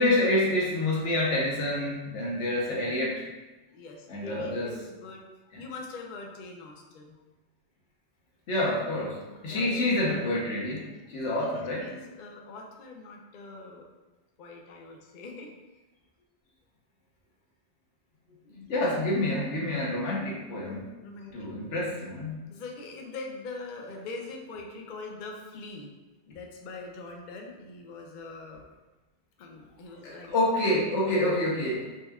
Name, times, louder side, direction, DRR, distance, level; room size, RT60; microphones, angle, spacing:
voice 1, 0.0-3.2 4.1-4.7 8.5-11.9 18.7-20.9 21.3-22.4 30.0-32.0, left 1 dB, 85° left, -4 dB, 1.2 m, -28 dB
voice 2, 3.7-5.3 5.6-7.2 9.2-9.7 11.1-13.9 14.4-15.5 18.4-18.7 21.0-21.9 22.5-25.9 26.3-28.6 29.4-30.3, left 3 dB, 55° left, 1 dB, 0.6 m, -43 dB
4.2 x 3.2 x 2.3 m, 1.2 s
omnidirectional pair, 1.2 m